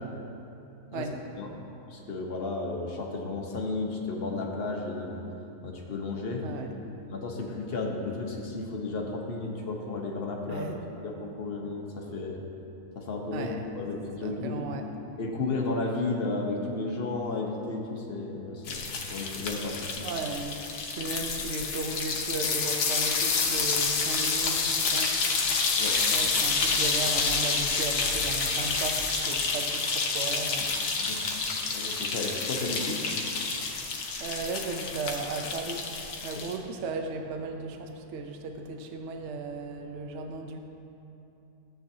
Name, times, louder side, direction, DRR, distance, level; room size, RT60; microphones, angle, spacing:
voice 1, 1.9-5.2 5.6-6.5 7.1-10.8 11.0-12.4 12.9-13.5 13.7-14.6 15.2-20.1 25.8-26.0 31.0-31.3 31.7-33.0, left 3 dB, 45° left, 0 dB, 1.0 m, -33 dB
voice 2, 6.4-6.7 10.5-10.8 13.3-13.6 14.2-14.8 20.0-20.6 20.9-25.6 26.1-30.8 33.8-40.6, right 3 dB, 60° right, 4 dB, 0.8 m, -36 dB
sound 1, 18.7-36.6, left 4 dB, 80° left, 1.4 m, -29 dB
13.0 x 7.8 x 2.8 m, 2.8 s
omnidirectional pair, 1.7 m